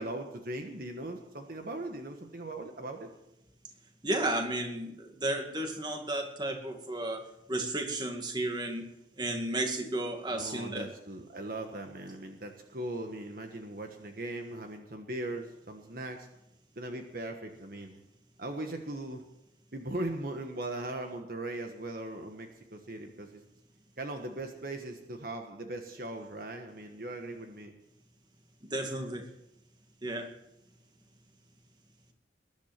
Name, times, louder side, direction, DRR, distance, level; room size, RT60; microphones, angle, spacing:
voice 1, 0.0-3.1 10.3-16.3 16.7-18.0 18.4-19.2 19.7-23.4 24.0-27.7, right 1 dB, 55° right, 4 dB, 1.4 m, -39 dB
voice 2, 4.0-8.8 9.2-10.9 28.6-29.3 30.0-30.3, right 1 dB, 25° right, 4 dB, 2.1 m, -33 dB
21.0 x 11.0 x 5.9 m, 0.83 s
head